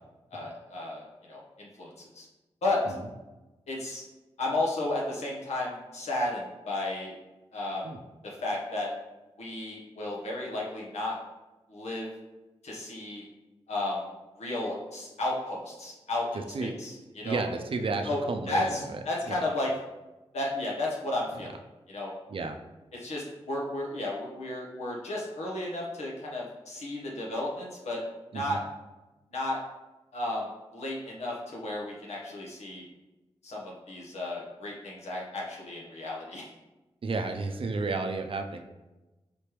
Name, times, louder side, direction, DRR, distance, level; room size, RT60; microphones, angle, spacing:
voice 1, 0.3-2.3 2.6-2.8 3.7-4.0 4.4-7.1 7.5-7.9 8.2-8.9 9.4-11.2 11.7-12.1 12.6-13.2 13.7-14.1 14.4-17.4 18.0-18.2 18.5-19.7 20.3-21.6 21.9-22.1 23.0-28.0 28.3-28.6 29.3-29.6 30.1-32.8 33.4-36.5, left 2 dB, 85° left, -3 dB, 1.0 m, -33 dB
voice 2, 17.2-19.0 19.3-19.4 22.3-22.6 28.3-28.6 37.0-38.6, right 3 dB, 55° right, 6 dB, 0.5 m, -32 dB
4.1 x 3.3 x 3.0 m, 1.1 s
cardioid pair, 60°, 11 cm